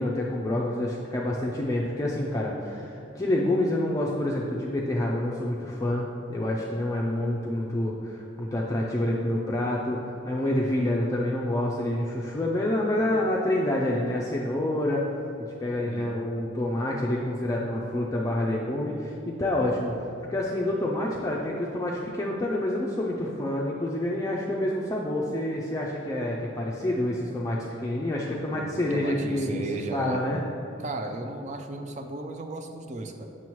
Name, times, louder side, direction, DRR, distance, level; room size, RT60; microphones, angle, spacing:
voice 1, 0.0-15.1 15.6-29.5 29.9-30.4, left 1 dB, 20° left, -3 dB, 0.4 m, -28 dB
voice 2, 28.5-30.2 30.8-33.3, right 2 dB, 40° right, 6 dB, 0.5 m, -35 dB
7.3 x 6.1 x 3.1 m, 2.6 s
head